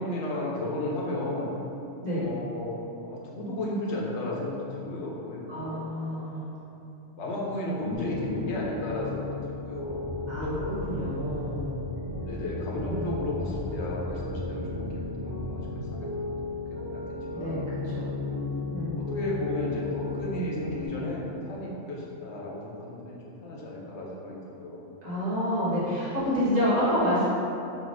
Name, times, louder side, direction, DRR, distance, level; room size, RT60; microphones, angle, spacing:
voice 1, 0.0-1.5 2.1-2.8 3.0-5.8 7.1-10.6 12.2-16.3 16.7-17.6 18.2-18.6 19.0-24.9, left 1 dB, 75° left, -4 dB, 0.9 m, -34 dB
voice 2, 5.5-6.7 10.3-11.7 12.9-13.1 17.3-18.1 18.7-19.0 25.0-27.3, equal, 35° right, -12 dB, 1.3 m, -29 dB
Piano, 7.9-20.9, left 3 dB, 10° right, 1.2 m, -35 dB
sound 1, 9.8-15.9, equal, 35° left, 1.4 m, -37 dB
3.9 x 2.7 x 2.5 m, 2.9 s
omnidirectional pair, 1.2 m